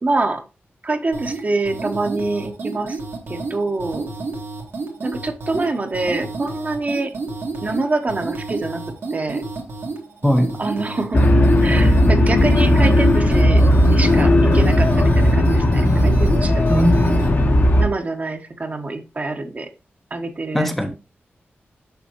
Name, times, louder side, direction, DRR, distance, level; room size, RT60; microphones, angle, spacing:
voice 1, 0.0-0.4 0.8-3.0 3.3-4.1 5.0-7.1 7.6-8.8 9.1-9.4 10.6-11.2 11.6-13.6 13.9-16.8 17.8-19.7 20.1-20.7, right 2 dB, 40° right, 1.1 m, -25 dB
sound 1, 1.1-17.3, right 3 dB, 75° right, 1.9 m, -30 dB
sound 2, 11.1-17.9, left 1 dB, 55° left, 1.2 m, -15 dB
voice 2, 16.7-17.3 20.5-20.9, equal, 5° left, 0.8 m, -19 dB
6.9 x 6.1 x 3.0 m
wide cardioid pair, 100°, 4 cm